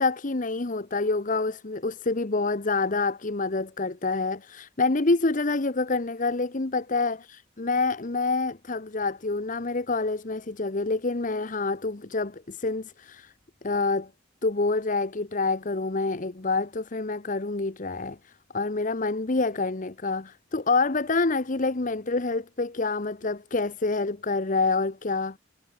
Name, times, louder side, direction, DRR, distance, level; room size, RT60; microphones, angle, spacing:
voice 1, 0.0-13.3 13.6-14.1 14.4-25.4, left 3 dB, 45° left, 1.0 m, -27 dB
head